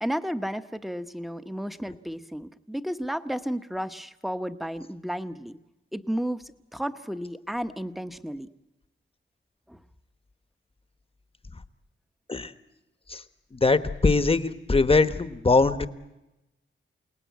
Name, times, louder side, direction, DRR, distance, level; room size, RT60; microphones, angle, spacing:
voice 1, 0.0-5.6 5.9-6.4 6.7-8.5 9.7-9.8, equal, ahead, 10 dB, 1.0 m, -32 dB
voice 2, 13.5-15.9, left 3 dB, 25° left, 11 dB, 1.1 m, -22 dB
28.5 x 19.0 x 9.4 m, 0.99 s
wide cardioid pair, 110°, 21 cm